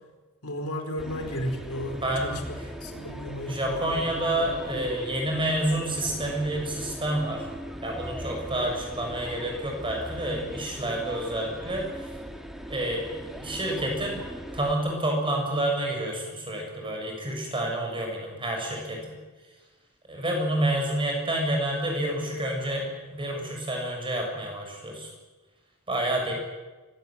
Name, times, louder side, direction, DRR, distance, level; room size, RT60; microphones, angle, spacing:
voice 1, 0.4-4.8, equal, 80° left, 4 dB, 4.6 m, -35 dB
sound 1, 1.0-14.8, equal, ahead, 2.0 m, -40 dB
voice 2, 2.0-2.6 3.5-7.5 7.8-12.1 12.7-14.2 14.5-19.1 20.1-25.1 25.9-26.3, right 1 dB, 25° right, 1 dB, 6.8 m, -29 dB
24.5 x 16.5 x 9.0 m, 1.2 s
head